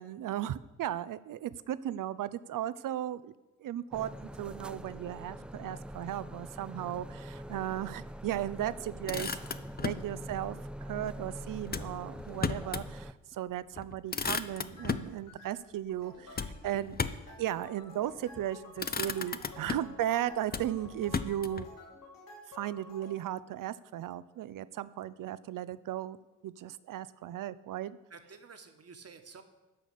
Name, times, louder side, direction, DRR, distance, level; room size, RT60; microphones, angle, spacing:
voice 1, 0.0-3.3 3.6-9.3 9.8-10.6 10.8-17.0 17.4-21.7 22.5-26.2 26.4-28.0, right 12 dB, 55° right, 17 dB, 0.6 m, -36 dB
sound 1, 3.9-13.1, equal, 5° right, 0.3 m, -44 dB
Motor vehicle (road), 8.8-10.1 11.7-12.9 13.3-13.4 13.7-15.1 16.4-17.4 18.2-18.5 18.8-20.0 20.5-21.7, left 5 dB, 25° left, 0.7 m, -35 dB
sound 2, 14.8-14.9 15.3-15.5 15.9-23.1, left 2 dB, 55° left, 3.6 m, -52 dB
voice 2, 28.1-29.4, right 5 dB, 35° right, 7 dB, 1.4 m, -50 dB
12.5 x 4.9 x 6.9 m, 1.1 s
hypercardioid pair, 40°, 40 cm